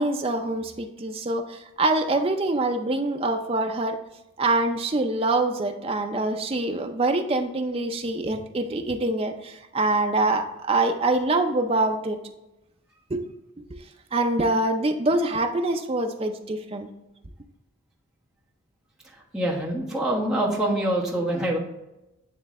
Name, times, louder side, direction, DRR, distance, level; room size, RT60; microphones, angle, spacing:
voice 1, 0.0-4.0 4.4-12.2 13.1-13.2 13.7-13.8 14.1-16.9, right 2 dB, 25° right, 5 dB, 0.5 m, -25 dB
voice 2, 19.1-21.6, right 1 dB, 5° right, -6 dB, 1.3 m, -25 dB
9.4 x 3.2 x 3.6 m, 0.93 s
head